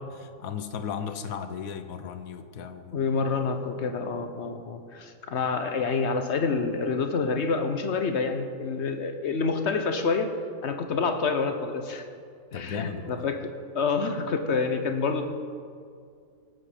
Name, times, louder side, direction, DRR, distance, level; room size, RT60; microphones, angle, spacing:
voice 1, 0.2-3.0 12.5-13.2, left 7 dB, 75° left, 9 dB, 1.2 m, -35 dB
voice 2, 2.9-10.3 10.6-12.0 12.5-15.3, left 4 dB, 55° left, 7 dB, 1.0 m, -28 dB
18.0 x 7.7 x 5.0 m, 2.3 s
omnidirectional pair, 1.5 m